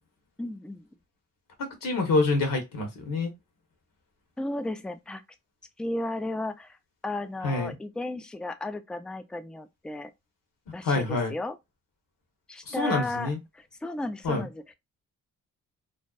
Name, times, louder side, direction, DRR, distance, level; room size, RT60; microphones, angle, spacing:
voice 1, 0.4-0.9 4.4-5.2 5.8-6.8 7.0-10.1 10.7-11.6 12.5-14.7, left 2 dB, 5° left, 0.3 m, -34 dB
voice 2, 1.6-3.3 7.4-7.7 10.8-11.3 12.7-13.4 14.2-14.5, left 3 dB, 65° left, 1.1 m, -26 dB
2.6 x 2.1 x 2.3 m
supercardioid pair, 55°, 35 cm